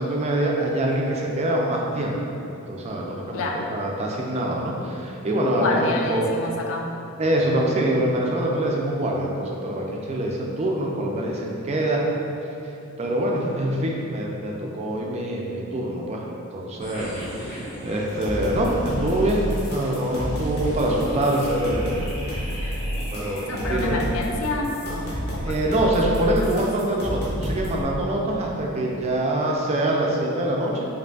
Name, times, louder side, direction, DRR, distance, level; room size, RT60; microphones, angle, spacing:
voice 1, 0.0-2.2 2.4-6.3 7.2-12.0 13.0-16.2 16.5-22.2 23.1-24.0 25.4-30.9, right 1 dB, 30° right, -1 dB, 0.4 m, -25 dB
voice 2, 3.3-3.7 5.5-6.8 23.5-25.8 26.2-26.7, left 2 dB, 70° left, 1 dB, 0.4 m, -28 dB
sound 1, 16.8-24.0, equal, 35° left, 1.2 m, -38 dB
sound 2, 18.1-27.8, equal, 50° left, 0.9 m, -30 dB
4.9 x 2.7 x 2.3 m, 2.8 s
head